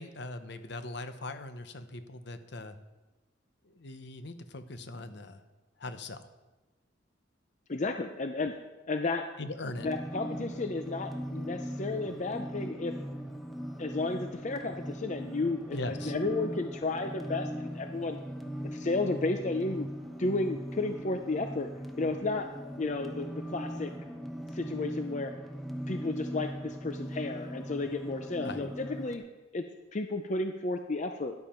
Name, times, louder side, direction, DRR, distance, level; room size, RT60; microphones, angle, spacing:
voice 1, 0.0-2.8 3.6-5.4 5.8-6.2 9.4-9.9 15.7-16.1 28.4-28.7, left 2 dB, 60° left, 9 dB, 0.9 m, -40 dB
voice 2, 7.7-8.6 8.9-9.2 9.8-12.9 13.8-18.2 18.6-19.9 20.2-21.7 22.0-22.5 22.8-23.9 24.5-25.3 25.9-29.2 29.5-29.6 29.9-31.3, left 3 dB, 40° left, 6 dB, 0.6 m, -32 dB
sound 1, 9.8-29.2, equal, ahead, 0.9 m, -39 dB
12.5 x 11.0 x 4.4 m, 1.2 s
head